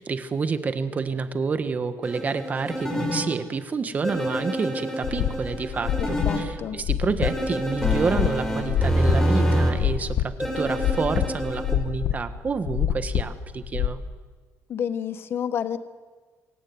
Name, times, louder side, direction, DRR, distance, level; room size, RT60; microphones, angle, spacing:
voice 1, 0.0-14.0, right 5 dB, 30° right, 11 dB, 1.4 m, -28 dB
sound 1, 2.0-3.3 4.0-6.4 7.2-9.7 10.4-11.8, equal, 10° left, 4.9 m, -26 dB
sound 2, 5.0-9.2 9.5-13.9, left 10 dB, 80° left, 1.5 m, -26 dB
voice 2, 6.0-6.8 14.7-15.8, left 8 dB, 45° left, 13 dB, 1.2 m, -29 dB
25.0 x 16.5 x 9.6 m, 1.4 s
cardioid pair, 150°, 5 cm